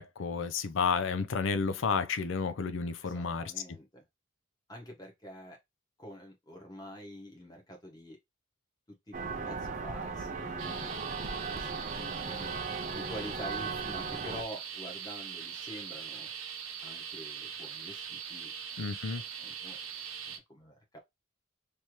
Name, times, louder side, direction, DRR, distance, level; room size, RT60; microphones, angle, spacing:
voice 1, 0.0-3.5 18.8-19.2, left 5 dB, 65° left, 0.4 m, -31 dB
voice 2, 3.0-4.0 4.7-5.6 6.0-8.2 9.1-9.2 9.4-12.6 12.9-16.3 16.8-18.5 19.1-19.8 20.2-21.0, equal, 20° left, 1.2 m, -46 dB
sound 1, 9.1-14.4, right 4 dB, 35° right, 0.5 m, -37 dB
sound 2, 10.6-20.4, right 7 dB, 80° right, 0.8 m, -42 dB
3.3 x 2.8 x 2.9 m
head